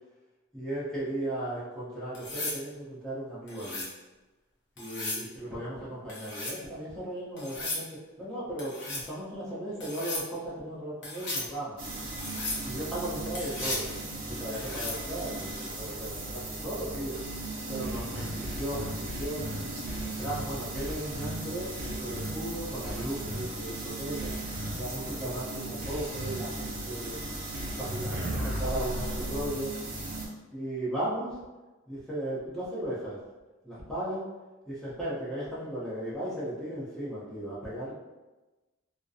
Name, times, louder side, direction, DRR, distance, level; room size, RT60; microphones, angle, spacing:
voice 1, 0.5-3.8 4.8-7.9 8.2-11.8 12.6-13.9 14.3-17.2 17.7-19.5 20.0-21.7 22.0-24.3 24.8-27.2 27.7-29.7 30.5-31.3 31.9-33.2 33.6-34.2 34.7-37.9, right 1 dB, ahead, -10 dB, 0.7 m, -36 dB
sound 1, 2.1-2.6 3.5-3.9 4.8-5.3 6.1-6.6 7.4-7.8 8.6-9.1 9.8-10.3 11.0-11.5 12.2-12.6 13.3-13.9 14.5-15.0 16.9-17.2, left 2 dB, 55° left, 0.6 m, -35 dB
sound 2, 11.8-30.3, right 2 dB, 40° right, 0.5 m, -37 dB
sound 3, 17.8-20.4 20.7-21.3 21.8-22.3 22.8-23.5 24.2-24.7 25.8-26.4 27.5-29.5, equal, 90° right, 0.6 m, -36 dB
2.4 x 2.2 x 2.6 m, 1.2 s
head